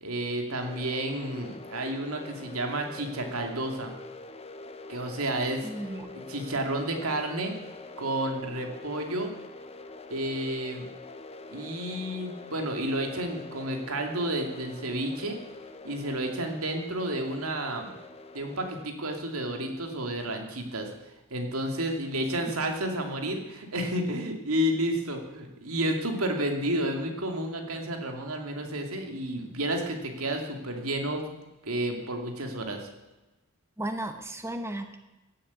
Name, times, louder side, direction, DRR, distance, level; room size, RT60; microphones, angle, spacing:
voice 1, 0.0-3.9 4.9-5.7 6.1-7.5 8.0-9.3 10.1-10.9 11.5-15.4 15.8-17.9 18.3-20.9 21.3-31.3 31.6-32.9, right 1 dB, 85° right, 3 dB, 2.6 m, -31 dB
sound 1, 0.6-18.8, left 2 dB, 30° left, 0.9 m, -45 dB
voice 2, 5.6-6.1 22.3-22.4 33.8-35.0, right 1 dB, 15° right, 6 dB, 1.1 m, -35 dB
16.0 x 8.5 x 8.3 m, 1.0 s
head